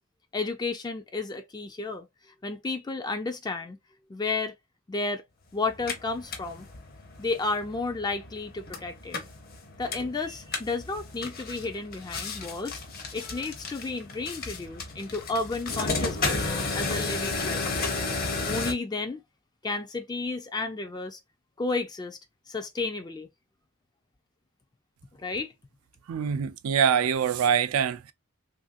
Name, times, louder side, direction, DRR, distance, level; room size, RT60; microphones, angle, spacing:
voice 1, 0.3-3.8 4.1-4.6 4.9-5.2 5.5-6.7 7.2-9.2 9.8-12.8 13.1-16.5 16.7-17.8 18.5-19.2 19.6-21.2 21.6-22.2 22.5-23.3 25.2-25.5, left 3 dB, 20° left, 0.3 m, -32 dB
sound 1, 5.7-18.7, left 3 dB, 45° left, 0.7 m, -33 dB
voice 2, 26.1-28.1, right 7 dB, 85° right, 0.4 m, -24 dB
3.1 x 2.5 x 2.4 m
head